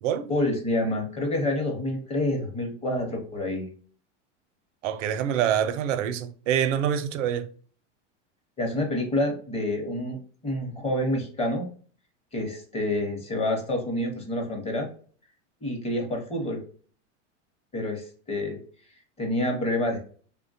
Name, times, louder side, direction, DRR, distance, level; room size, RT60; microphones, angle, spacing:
voice 1, 0.3-3.7 8.6-10.2 10.4-11.6 12.3-14.9 15.6-16.6 17.7-18.6 19.2-20.0, left 1 dB, 15° left, 0.7 m, -28 dB
voice 2, 4.8-7.5, right 9 dB, 85° right, 0.5 m, -26 dB
3.1 x 2.2 x 2.6 m
supercardioid pair, 125°, 37 cm